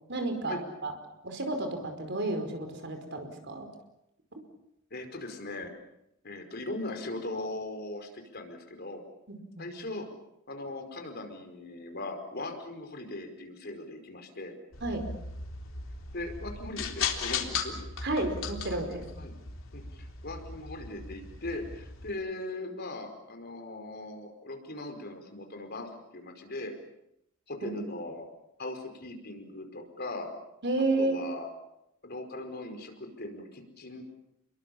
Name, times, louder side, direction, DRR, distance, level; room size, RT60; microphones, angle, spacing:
voice 1, 0.1-0.9 1.2-3.7 4.3-4.4 9.3-9.7 14.8-15.0 18.0-19.1 27.6-27.8 30.6-31.2, right 2 dB, 60° right, 6 dB, 5.0 m, -31 dB
voice 2, 4.9-5.7 6.2-9.0 9.6-10.1 10.5-14.5 16.1-17.8 19.2-19.3 19.7-26.7 27.5-28.2 28.6-30.3 31.0-31.5 32.0-34.0, left 2 dB, 55° left, 4 dB, 5.0 m, -39 dB
sound 1, 14.7-22.1, left 5 dB, 85° left, 3.6 m, -37 dB
30.0 x 22.5 x 7.3 m, 0.81 s
head